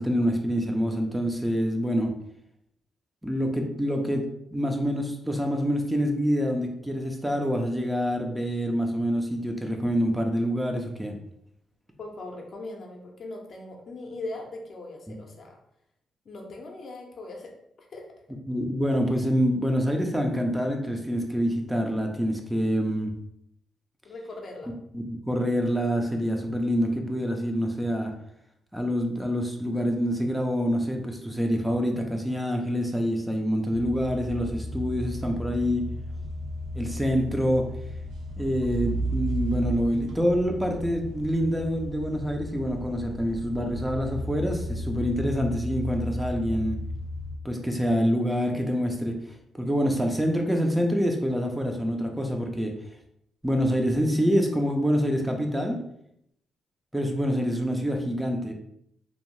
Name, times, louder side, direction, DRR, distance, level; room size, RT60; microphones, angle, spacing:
voice 1, 0.0-2.1 3.2-4.2 4.5-11.2 18.5-23.1 24.9-28.1 28.7-35.9 36.7-37.7 38.4-46.8 47.4-49.2 49.6-52.7 53.4-55.8 56.9-58.5, equal, 5° right, 2 dB, 0.3 m, -26 dB
voice 2, 12.0-15.6 16.3-17.5 17.8-18.1 24.0-24.7, left 2 dB, 55° left, 1 dB, 0.5 m, -40 dB
sound 1, 33.7-47.4, equal, 85° right, 0.5 m, -34 dB
2.6 x 2.0 x 3.0 m, 0.75 s
cardioid pair, 105°, 0 cm